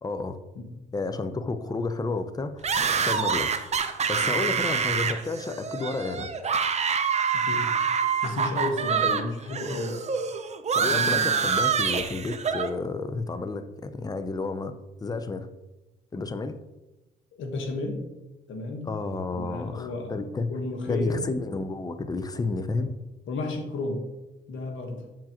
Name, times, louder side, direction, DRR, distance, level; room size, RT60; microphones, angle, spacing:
voice 1, 0.0-0.4 0.9-2.7 3.0-3.5 4.1-6.3 9.0-9.3 10.7-14.7 15.0-15.5 16.1-16.6 18.8-20.5 20.9-22.9, left 3 dB, 20° left, 10 dB, 0.5 m, -31 dB
sound 1, 2.6-9.2 9.5-12.7, right 6 dB, 35° right, 0.6 m, -26 dB
voice 2, 7.3-7.7 8.2-10.0 10.8-11.4 17.4-18.0 18.5-18.9 19.3-20.2 20.5-21.3 22.7-22.9 23.3-24.0 24.5-25.0, left 2 dB, 75° left, 3 dB, 1.2 m, -32 dB
7.3 x 4.7 x 2.9 m, 1.0 s
cardioid pair, 90°, 20 cm